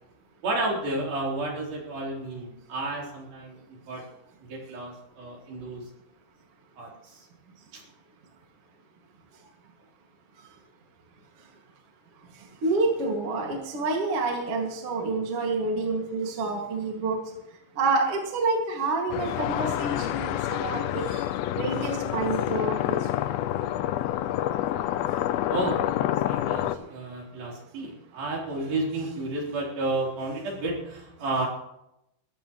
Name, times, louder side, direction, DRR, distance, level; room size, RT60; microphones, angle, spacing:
voice 1, 0.4-3.6 3.9-4.0 4.5-5.8 6.8-7.3 7.7-7.8 25.5-25.8 26.3-31.5, right 2 dB, 60° right, -2 dB, 5.4 m, -31 dB
voice 2, 12.6-17.2 17.8-21.3 21.6-23.1, right 3 dB, 40° right, 0 dB, 2.5 m, -28 dB
sound 1, 19.1-26.8, left 12 dB, 80° left, 2.2 m, -28 dB
21.0 x 14.0 x 3.1 m, 0.84 s
omnidirectional pair, 4.9 m